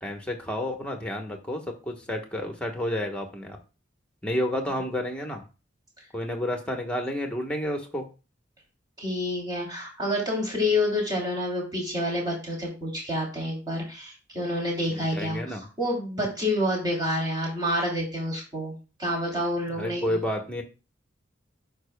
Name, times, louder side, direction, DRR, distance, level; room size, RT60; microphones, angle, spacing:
voice 1, 0.0-3.6 4.2-5.4 6.1-8.1 14.9-15.7 19.7-20.6, left 1 dB, 5° left, 3 dB, 1.1 m, -30 dB
voice 2, 9.0-20.2, left 1 dB, 20° right, -3 dB, 2.8 m, -28 dB
12.0 x 4.7 x 2.2 m, 0.32 s
head